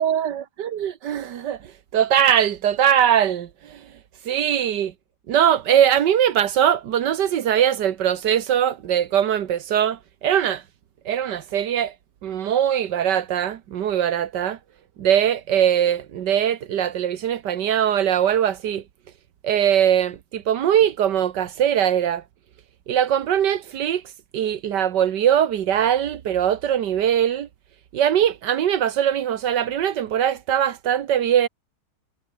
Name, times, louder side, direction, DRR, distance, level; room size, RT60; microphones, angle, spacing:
voice 1, 0.0-3.9 4.3-4.9 5.3-10.6 11.1-12.0 12.2-14.6 15.0-18.8 19.4-22.2 22.9-24.0 24.3-27.5 27.9-31.5, right 9 dB, 85° right, 1.7 m, -21 dB
omnidirectional pair, 1.8 m